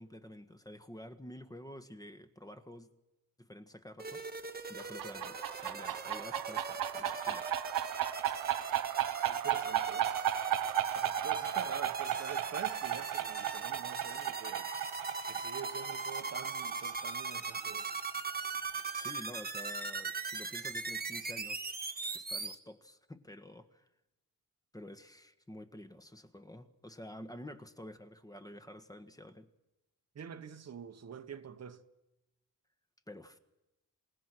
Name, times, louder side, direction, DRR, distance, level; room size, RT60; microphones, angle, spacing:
voice 1, 0.0-2.9 3.4-7.5 19.0-21.7 22.1-23.9 24.7-29.5 33.1-33.4, left 1 dB, 10° left, 1.6 m, -50 dB
sound 1, 4.0-22.5, right 4 dB, 30° right, 1.8 m, -40 dB
sound 2, 4.8-18.2, right 12 dB, 80° right, 1.1 m, -36 dB
voice 2, 9.3-10.2 10.9-14.7 15.3-17.9 30.1-31.8, right 7 dB, 50° right, 1.4 m, -46 dB
28.5 x 17.0 x 6.2 m
cardioid pair, 95°, 33 cm